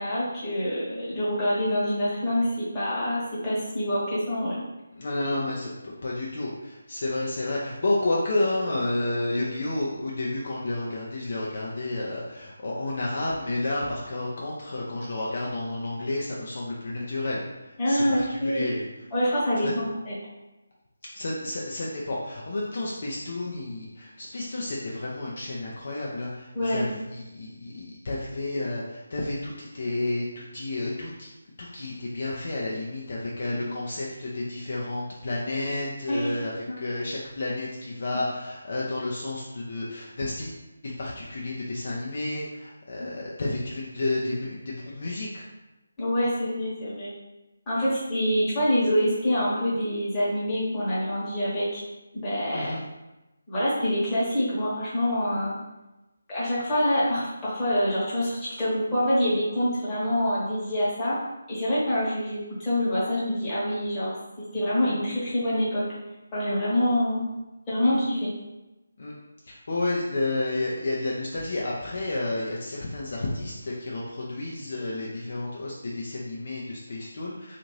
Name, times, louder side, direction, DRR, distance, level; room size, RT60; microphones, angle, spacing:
voice 1, 0.0-4.6 17.8-18.6 19.1-20.1 26.5-26.9 36.1-36.3 36.7-36.8 46.0-47.1 47.7-51.8 52.1-52.7 53.5-55.6 56.3-61.2 61.5-65.9 66.3-67.2 67.7-68.3, equal, 15° left, -10 dB, 1.0 m, -26 dB
voice 2, 4.9-18.9 19.6-19.7 21.1-31.3 31.6-45.4 52.5-52.8 69.0-69.2 69.5-77.6, left 2 dB, 50° left, -4 dB, 0.5 m, -31 dB
2.6 x 2.5 x 3.0 m, 1.0 s
figure-of-eight pair, 155°, 0 cm